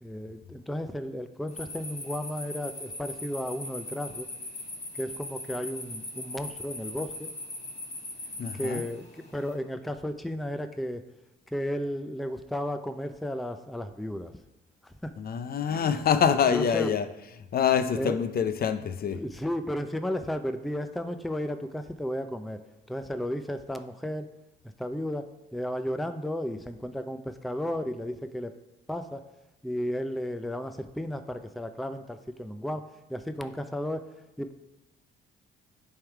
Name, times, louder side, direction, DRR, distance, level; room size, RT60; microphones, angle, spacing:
voice 1, 0.0-4.3 4.9-7.3 8.5-11.0 11.5-14.3 14.8-15.1 15.7-16.0 16.3-16.9 17.9-18.2 19.1-22.6 22.9-24.3 24.8-28.5 28.9-29.2 29.6-32.8 33.1-34.0 34.4-34.5, equal, ahead, 0.4 m, -33 dB
sound 1, 1.5-9.5, left 2 dB, 35° left, 1.8 m, -40 dB
voice 2, 8.4-8.8 15.2-17.1 17.5-19.2, left 7 dB, 50° left, 0.5 m, -25 dB
10.0 x 3.6 x 4.6 m
cardioid pair, 90°, 20 cm